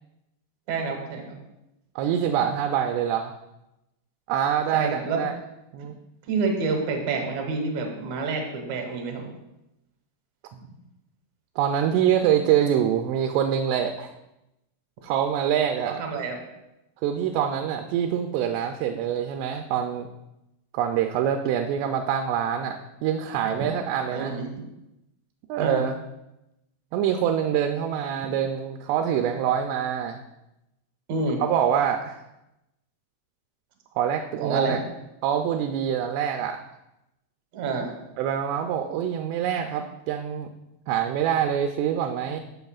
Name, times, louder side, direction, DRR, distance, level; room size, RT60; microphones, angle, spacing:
voice 1, 0.7-1.3 4.7-5.2 6.3-9.3 15.8-16.4 23.6-23.7 24.1-24.5 25.6-25.8 31.1-31.4 34.4-34.8 37.5-37.9, right 4 dB, 65° right, 2 dB, 1.9 m, -28 dB
voice 2, 2.0-3.3 4.3-5.3 5.7-5.9 11.6-14.1 15.0-16.0 17.0-20.1 20.7-24.3 25.5-25.9 26.9-30.2 31.4-32.2 34.0-34.8 35.2-36.6 38.2-40.5 40.9-42.4, right 9 dB, 90° right, 5 dB, 2.7 m, -25 dB
13.0 x 6.7 x 2.4 m, 0.91 s
omnidirectional pair, 4.8 m